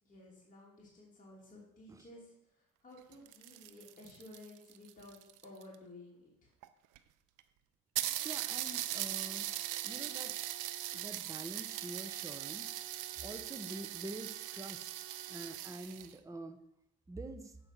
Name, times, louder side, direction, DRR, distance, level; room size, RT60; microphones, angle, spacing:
voice 1, 0.0-6.5, left 2 dB, 25° left, -4 dB, 2.8 m, -55 dB
sound 1, 3.0-5.7 6.6-6.7 7.0-7.1 7.4-7.5 8.0-16.1, right 13 dB, 90° right, 0.6 m, -40 dB
voice 2, 8.2-9.5 9.8-10.3 10.9-14.9 15.3-16.6 17.1-17.6, right 2 dB, 10° right, 8 dB, 0.7 m, -46 dB
7.8 x 5.2 x 5.9 m, 0.77 s
cardioid pair, 90°, 30 cm